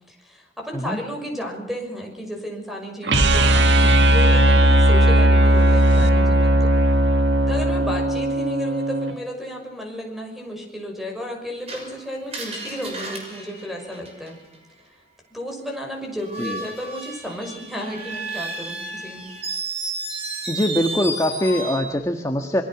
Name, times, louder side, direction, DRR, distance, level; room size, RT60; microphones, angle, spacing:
voice 1, 0.1-7.1 7.5-14.4 15.3-19.3, equal, ahead, 2 dB, 6.2 m, -33 dB
sound 1, 3.0-9.1, right 1 dB, 85° right, 1.8 m, -17 dB
Screech, 11.7-14.6 16.2-21.9, right 2 dB, 35° right, 6.2 m, -32 dB
voice 2, 20.5-22.6, left 1 dB, 20° left, 4 dB, 1.5 m, -23 dB
27.0 x 22.5 x 6.1 m, 0.83 s
head